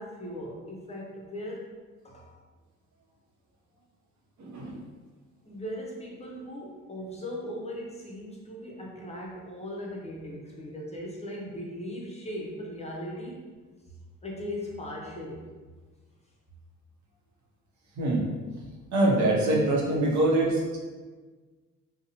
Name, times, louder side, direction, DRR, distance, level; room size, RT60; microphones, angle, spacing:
voice 1, 0.0-1.6 2.0-2.4 5.4-13.5 14.2-15.4, equal, 20° left, -2 dB, 0.5 m, -38 dB
voice 2, 4.4-4.8 18.0-18.3 18.9-20.8, right 1 dB, 70° right, -2 dB, 0.7 m, -24 dB
2.6 x 2.0 x 2.7 m, 1.4 s
cardioid pair, 90°, 30 cm